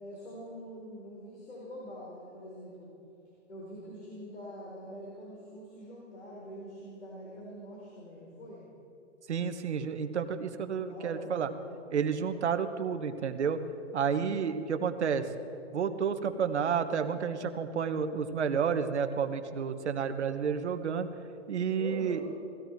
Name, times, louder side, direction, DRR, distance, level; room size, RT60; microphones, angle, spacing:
voice 1, 0.0-2.9 3.5-8.6 10.7-11.8 21.8-22.3, equal, 65° left, -4 dB, 4.6 m, -45 dB
voice 2, 9.3-11.5 11.9-13.6 13.9-15.3 15.7-21.1 21.5-22.2, right 7 dB, 65° right, 8 dB, 1.3 m, -30 dB
18.5 x 16.0 x 4.7 m, 2.9 s
hypercardioid pair, 175°, 37 cm